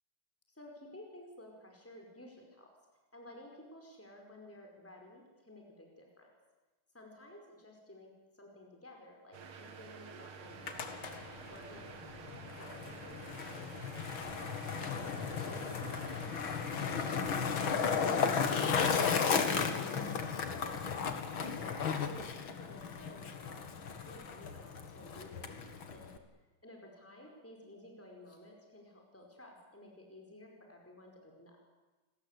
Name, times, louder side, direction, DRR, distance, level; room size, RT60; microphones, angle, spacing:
voice 1, 0.5-2.7 3.1-6.3 6.9-15.7 16.0-17.2 17.7-20.9 21.4-26.1 26.6-31.6, left 1 dB, 5° left, 1 dB, 5.0 m, -54 dB
sound 1, 9.3-17.3, right 6 dB, 75° right, 2.6 m, -50 dB
Skateboard, 10.5-26.2, left 6 dB, 70° left, 2.6 m, -35 dB
28.5 x 19.5 x 8.3 m, 1.2 s
omnidirectional pair, 2.4 m